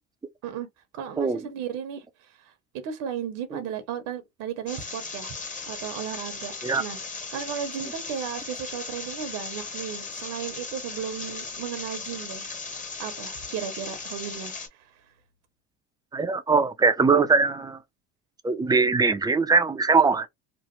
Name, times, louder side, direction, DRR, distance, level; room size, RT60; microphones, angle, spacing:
voice 1, 0.9-5.3 5.7-7.0 7.3-12.5 13.0-15.0, right 8 dB, 65° right, 0.9 m, -35 dB
sound 1, 4.7-14.7, left 4 dB, 25° left, 1.1 m, -37 dB
voice 2, 16.1-17.8 18.4-20.3, right 4 dB, 10° right, 0.5 m, -21 dB
3.1 x 2.0 x 3.0 m
supercardioid pair, 85°, 34 cm